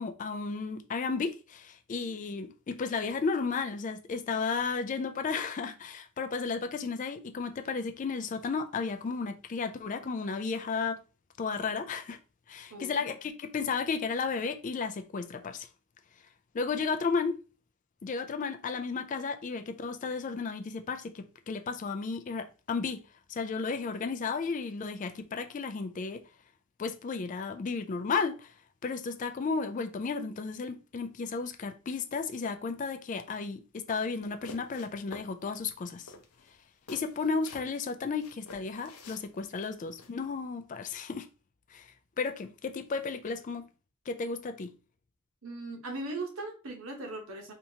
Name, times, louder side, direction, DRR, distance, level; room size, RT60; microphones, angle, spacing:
voice 1, 0.0-11.0 11.4-12.2 12.5-15.7 16.5-17.4 18.0-23.0 23.3-26.2 26.8-28.5 28.8-36.1 36.9-41.3 41.7-43.7 44.1-44.7, left 4 dB, 35° left, 0.3 m, -33 dB
voice 2, 12.7-13.1 45.4-47.5, right 2 dB, 65° right, 1.0 m, -39 dB
sound 1, 34.2-35.3 35.7-35.8 36.1-37.8 38.2-40.1, left 3 dB, 90° left, 0.7 m, -49 dB
3.3 x 2.8 x 2.8 m
head